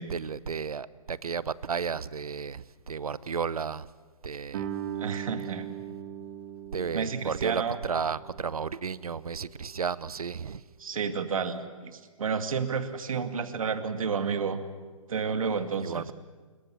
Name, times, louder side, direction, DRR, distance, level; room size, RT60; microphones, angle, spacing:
voice 1, 0.1-3.9 4.2-4.7 6.7-10.6 15.8-16.1, right 6 dB, 85° right, 19 dB, 0.9 m, -33 dB
Guitar, 4.5-9.9, right 10 dB, 45° right, 2.9 m, -40 dB
voice 2, 5.0-5.7 6.9-7.8 10.8-14.6 15.1-16.0, right 6 dB, 70° right, 8 dB, 2.4 m, -31 dB
26.0 x 23.0 x 7.8 m, 1.5 s
hypercardioid pair, 145°, 18 cm